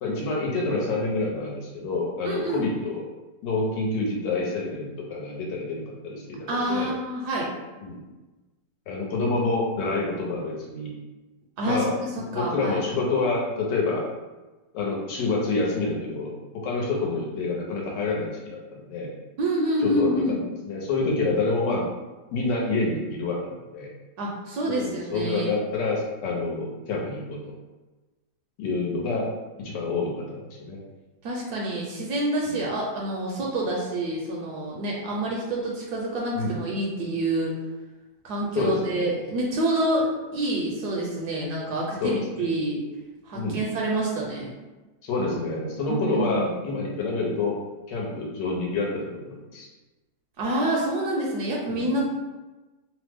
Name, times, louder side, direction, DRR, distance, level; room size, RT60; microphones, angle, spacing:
voice 1, 0.0-3.0 3.4-6.9 7.8-8.0 8.9-10.9 11.6-14.0 14.7-16.3 16.6-19.1 19.8-20.4 20.7-21.9 22.3-23.9 24.7-27.5 28.6-29.3 29.6-30.8 32.5-32.7 36.3-36.6 38.5-39.1 42.0-42.5 43.3-43.6 45.0-47.6 47.9-49.7 51.7-51.9, left 3 dB, 80° left, -1 dB, 1.4 m, -28 dB
voice 2, 2.2-2.7 6.5-7.5 11.6-12.8 19.4-20.4 24.2-25.6 31.2-37.6 38.2-42.8 43.3-44.5 45.9-46.5 50.4-52.0, right 1 dB, 70° right, -3 dB, 1.0 m, -27 dB
3.2 x 2.0 x 3.4 m, 1.2 s
omnidirectional pair, 1.9 m